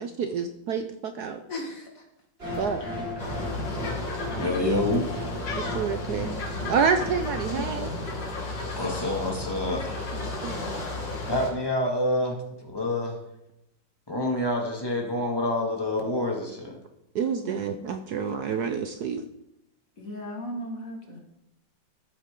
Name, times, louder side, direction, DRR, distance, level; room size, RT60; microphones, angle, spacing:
voice 1, 0.0-1.4 2.6-2.8 5.6-6.4 6.7-7.9 10.1-10.6 17.1-19.2, right 6 dB, 65° right, 8 dB, 1.1 m, -28 dB
voice 2, 1.5-2.0 2.8-3.0 17.4-17.5 20.0-21.2, left 1 dB, 45° left, 1 dB, 2.3 m, -36 dB
sound 1, 2.4-8.4, equal, 30° right, 4.8 m, -36 dB
sound 2, 3.2-11.5, left 2 dB, 70° left, 3.0 m, -33 dB
voice 3, 4.4-5.1 8.8-10.1 11.3-13.2 14.1-16.8, left 1 dB, 10° left, 0 dB, 2.1 m, -27 dB
13.5 x 8.6 x 3.8 m, 0.86 s
omnidirectional pair, 2.0 m